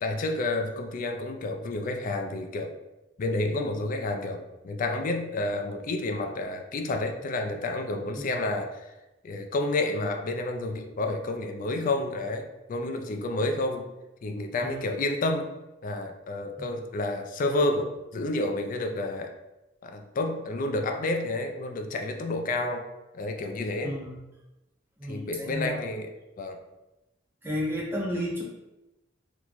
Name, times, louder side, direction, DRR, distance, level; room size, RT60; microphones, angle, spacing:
voice 1, 0.0-2.7 3.2-8.9 9.2-13.9 14.2-15.5 15.8-19.3 19.8-22.8 23.1-24.0 25.0-26.6, left 2 dB, 45° left, 4 dB, 0.4 m, -30 dB
voice 2, 23.8-24.2 25.0-25.8 27.4-28.4, equal, 10° right, -4 dB, 0.8 m, -32 dB
3.0 x 2.1 x 3.9 m, 1.0 s
head